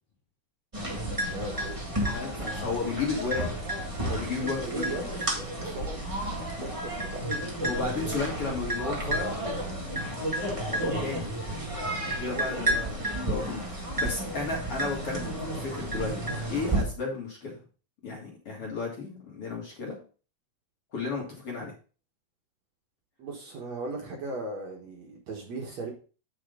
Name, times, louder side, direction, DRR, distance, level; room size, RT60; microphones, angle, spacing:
sound 1, 0.7-16.8, right 1 dB, 30° right, 0.6 m, -31 dB
voice 1, 1.3-1.8 4.6-6.0 6.6-7.2 12.2-12.8 23.2-25.9, right 3 dB, 55° right, -1 dB, 2.4 m, -37 dB
voice 2, 2.1-3.5 4.0-5.0 7.6-9.4 10.7-11.3 12.1-15.3 15.6-16.1 16.5-17.6 18.0-20.0 20.9-21.7, left 4 dB, 45° left, -2 dB, 2.4 m, -33 dB
9.2 x 6.3 x 3.8 m, 0.36 s
omnidirectional pair, 4.3 m